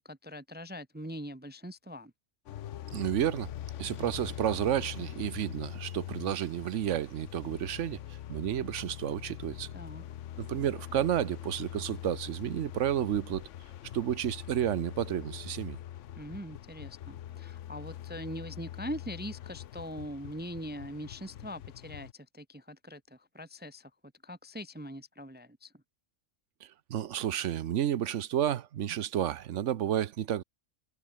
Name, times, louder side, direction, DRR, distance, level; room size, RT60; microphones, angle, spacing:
voice 1, 0.0-2.1 9.7-10.0 16.2-23.9 24.2-25.7, equal, 15° right, 0.4 m, -42 dB
sound 1, 2.5-22.1, left 11 dB, 80° left, 1.0 m, -43 dB
voice 2, 2.9-3.5 3.8-8.0 8.3-9.7 10.4-13.4 13.9-15.8 26.9-30.4, right 10 dB, 85° right, 1.1 m, -31 dB
omnidirectional pair, 1.2 m